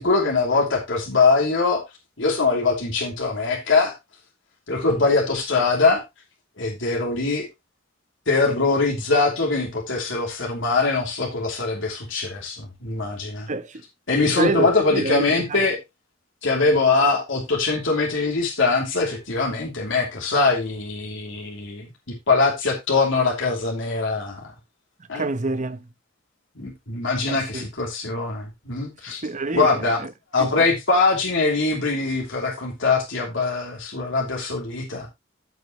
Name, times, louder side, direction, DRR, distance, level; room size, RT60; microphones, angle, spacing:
voice 1, 0.0-1.8 2.2-3.9 4.7-6.0 6.6-7.5 8.3-13.5 14.1-15.8 16.4-21.9 22.3-24.5 25.1-25.2 26.6-29.2 29.5-30.0 30.3-35.1, left 3 dB, 70° left, 2.9 m, -22 dB
voice 2, 13.5-13.8 14.2-15.7 25.1-25.8 27.3-27.6 29.2-29.8 30.4-30.5, right 2 dB, 40° right, 0.9 m, -26 dB
15.0 x 5.3 x 3.0 m
head